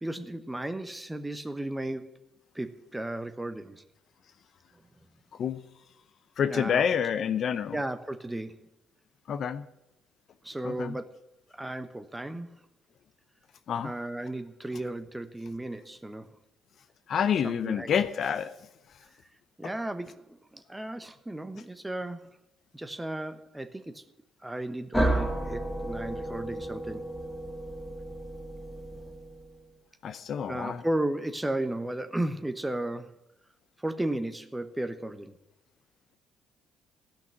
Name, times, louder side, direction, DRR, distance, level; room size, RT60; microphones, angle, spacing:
voice 1, 0.0-2.1 2.5-3.8 6.5-6.8 7.7-8.7 10.4-11.1 11.5-12.6 13.8-16.3 17.4-17.9 19.6-22.4 22.7-24.1 24.4-27.1 30.5-33.1 33.8-35.4, right 1 dB, 10° right, 1.0 m, -34 dB
voice 2, 6.4-7.8 9.3-9.6 10.6-11.0 13.7-13.9 17.1-18.5 30.0-30.8, left 8 dB, 55° left, 0.6 m, -28 dB
sound 1, 24.9-29.6, right 1 dB, 5° left, 2.3 m, -32 dB
14.0 x 6.0 x 7.4 m
hypercardioid pair, 50°, 0 cm